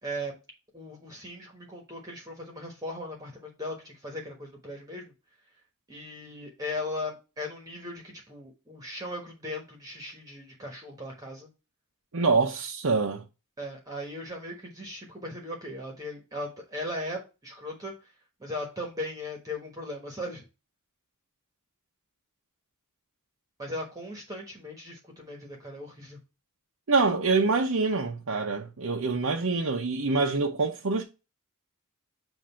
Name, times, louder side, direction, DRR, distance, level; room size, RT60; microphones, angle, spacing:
voice 1, 0.0-0.4 0.7-5.1 5.9-11.5 13.6-17.9 18.4-20.4 23.6-26.2, left 1 dB, 15° right, 1.3 m, -38 dB
voice 2, 12.1-13.2 26.9-31.0, right 4 dB, 70° right, 0.7 m, -25 dB
7.5 x 2.7 x 5.6 m
head